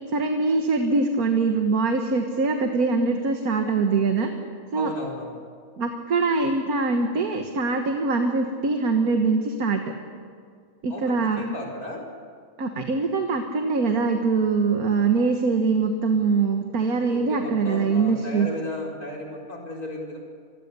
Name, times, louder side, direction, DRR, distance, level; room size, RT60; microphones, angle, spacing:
voice 1, 0.1-4.3 4.7-4.9 5.8-9.9 10.8-11.4 12.6-18.5, right 4 dB, 75° right, 4 dB, 1.9 m, -23 dB
voice 2, 4.7-5.4 10.9-12.0 17.1-20.2, left 1 dB, 80° left, -1 dB, 5.3 m, -35 dB
27.0 x 21.5 x 6.9 m, 2.1 s
omnidirectional pair, 1.5 m